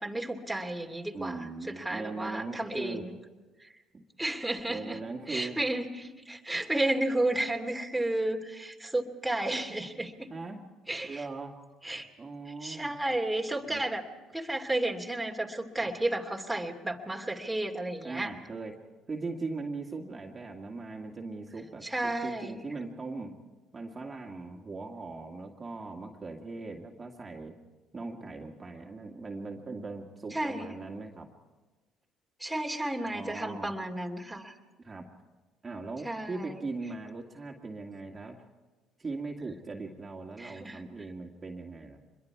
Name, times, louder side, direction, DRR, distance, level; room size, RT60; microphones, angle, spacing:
voice 1, 0.0-3.2 3.6-3.7 4.2-5.0 5.3-10.3 10.9-11.2 11.8-12.1 12.6-18.3 21.8-22.6 30.3-30.7 32.4-34.5 36.0-36.6 40.4-40.8, right 1 dB, 5° right, 1 dB, 2.7 m, -32 dB
voice 2, 1.1-3.0 3.9-4.0 4.7-5.6 10.3-10.6 11.0-11.5 12.2-12.9 13.7-13.8 15.8-15.9 18.0-18.7 19.1-23.3 23.7-27.5 27.9-31.3 33.0-33.7 34.8-35.0 35.6-38.4 39.0-42.0, right 3 dB, 30° right, 0 dB, 2.2 m, -39 dB
25.0 x 22.0 x 4.8 m, 1.2 s
supercardioid pair, 65°, 0 cm